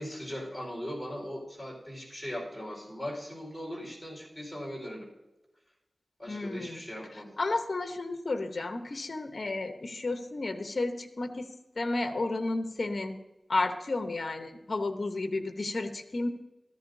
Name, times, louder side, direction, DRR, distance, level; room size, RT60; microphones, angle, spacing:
voice 1, 0.0-5.1 6.2-7.3, equal, ahead, -2 dB, 4.6 m, -39 dB
voice 2, 6.3-6.8 7.4-11.5 11.8-13.2 13.5-16.3, left 2 dB, 55° left, 6 dB, 1.0 m, -32 dB
14.5 x 14.0 x 2.7 m, 0.97 s
wide cardioid pair, 95°, 0 cm